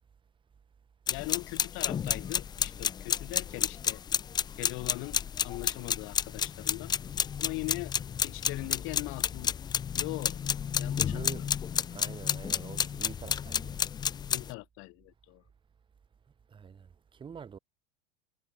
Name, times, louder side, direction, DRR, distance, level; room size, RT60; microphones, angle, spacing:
voice 1, 1.1-4.0 4.5-6.9 7.4-7.9 8.2-9.5 9.9-10.4 10.8-11.5 14.3-15.4, left 26 dB, 40° left, 1.0 m, -40 dB
sound 1, 1.1-14.5, left 8 dB, 15° left, 0.4 m, -31 dB
voice 2, 11.1-11.4 11.9-13.8 16.5-17.6, right 6 dB, 15° right, 1.0 m, -45 dB
figure-of-eight pair, 85°, 32 cm